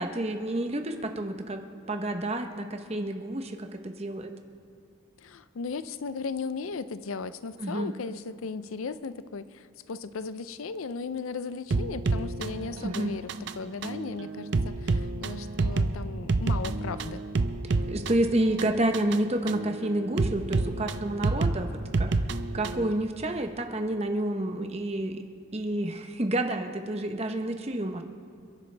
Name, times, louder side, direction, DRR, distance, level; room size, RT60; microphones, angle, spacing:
voice 1, 0.0-1.6 1.9-4.3 7.6-7.9 12.8-13.1 17.6-21.7 22.0-22.1 22.5-25.2 25.5-28.0, right 1 dB, 30° right, 5 dB, 0.8 m, -29 dB
voice 2, 5.2-17.2, left 4 dB, 75° left, 14 dB, 0.5 m, -36 dB
sound 1, 11.7-22.9, right 3 dB, 55° right, 0.5 m, -29 dB
29.0 x 11.0 x 3.3 m, 2.6 s
head